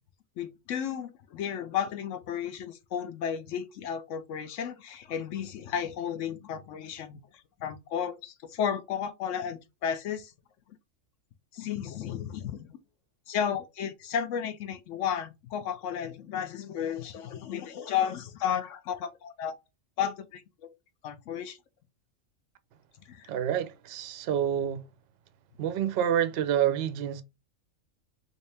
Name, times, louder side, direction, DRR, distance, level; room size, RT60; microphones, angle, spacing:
voice 1, 0.4-10.3 11.5-12.8 13.3-19.5 20.0-20.7 21.0-21.6 23.1-23.3, left 8 dB, 75° left, 0.9 m, -33 dB
voice 2, 23.3-24.9 25.6-27.2, right 10 dB, 60° right, 0.7 m, -28 dB
3.2 x 2.7 x 3.3 m
omnidirectional pair, 1.3 m